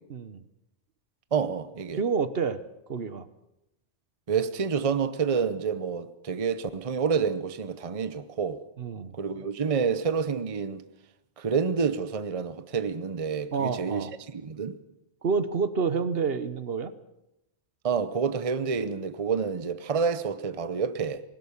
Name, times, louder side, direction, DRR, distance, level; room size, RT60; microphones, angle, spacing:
voice 1, 0.1-0.4 1.9-2.6 2.9-3.3 8.8-9.1 13.5-14.1 15.2-16.9, right 5 dB, 60° right, 1.1 m, -28 dB
voice 2, 1.3-2.0 4.3-8.6 9.1-10.8 11.4-14.1 14.3-14.7 17.8-21.2, right 6 dB, 35° right, 0.8 m, -28 dB
20.5 x 19.0 x 7.2 m
omnidirectional pair, 1.2 m